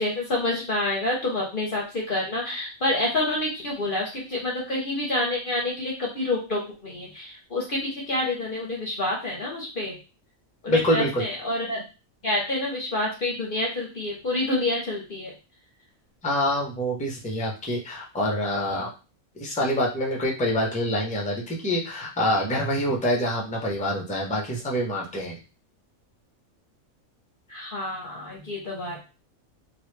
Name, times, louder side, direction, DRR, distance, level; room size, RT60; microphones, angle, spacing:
voice 1, 0.0-9.9 10.6-11.8 12.2-15.3 27.5-29.0, left 2 dB, 45° left, -3 dB, 0.8 m, -28 dB
voice 2, 10.7-11.2 16.2-18.9 19.4-25.4, equal, 10° left, -2 dB, 0.5 m, -26 dB
3.0 x 2.3 x 3.2 m, 0.32 s
omnidirectional pair, 1.5 m